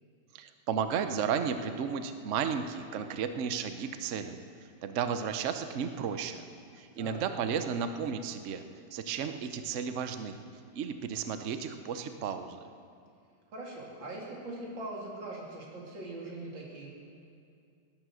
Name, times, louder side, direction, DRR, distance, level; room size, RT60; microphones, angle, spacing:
voice 1, 0.3-6.4 6.7-8.6 8.9-10.4 10.7-12.7, right 7 dB, 80° right, 9 dB, 0.6 m, -33 dB
voice 2, 13.5-16.9, right 2 dB, 60° right, -3 dB, 3.5 m, -41 dB
18.5 x 11.0 x 6.3 m, 2.4 s
omnidirectional pair, 2.4 m